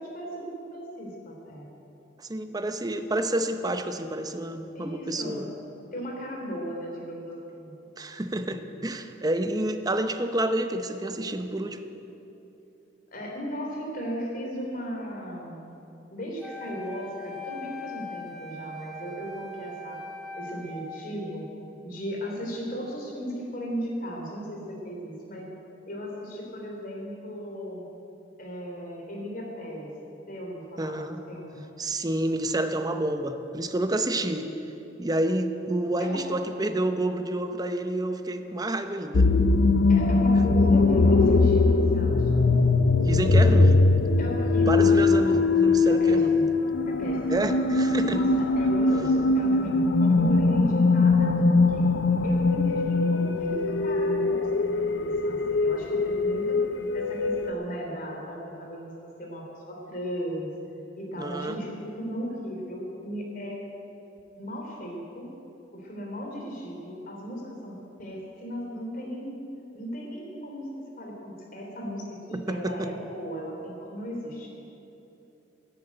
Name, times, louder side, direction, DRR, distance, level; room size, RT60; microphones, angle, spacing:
voice 1, 0.0-1.7 4.7-5.4 5.9-7.7 13.1-15.7 16.1-20.0 20.3-21.5 21.8-25.5 25.9-27.8 28.4-29.9 30.3-31.6 36.0-36.2 39.9-42.5 44.2-45.4 45.9-46.5 46.9-47.2 48.1-56.6 56.9-58.9 59.2-60.5 61.0-63.6 64.4-65.3 65.7-69.3 69.7-70.7 71.0-74.5, equal, 50° left, -1 dB, 3.2 m, -36 dB
voice 2, 2.2-5.5 8.0-11.8 30.8-31.2 31.8-34.5 35.0-39.3 43.0-43.8 44.6-46.4 47.3-48.2 61.2-61.6 72.3-72.9, right 1 dB, 20° right, 8 dB, 0.7 m, -29 dB
Wind instrument woodwind instrument, 16.4-21.5, left 1 dB, ahead, 1.6 m, -40 dB
sound 1, 39.1-57.5, left 3 dB, 70° left, 0.6 m, -21 dB
11.0 x 10.5 x 8.9 m, 2.9 s
head